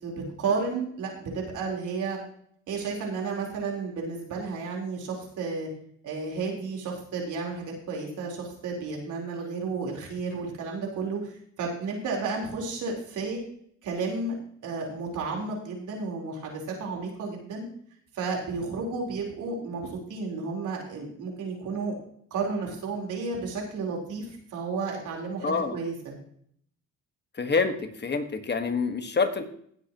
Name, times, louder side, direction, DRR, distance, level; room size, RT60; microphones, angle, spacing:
voice 1, 0.0-2.2 2.7-5.7 6.0-13.4 13.8-14.3 14.6-17.7 18.1-21.9 22.3-26.1, right 4 dB, 80° right, -1 dB, 4.2 m, -32 dB
voice 2, 25.4-25.8 27.4-29.4, left 4 dB, 35° left, 7 dB, 1.6 m, -27 dB
18.0 x 8.2 x 3.0 m, 0.62 s
cardioid pair, 90°, 30 cm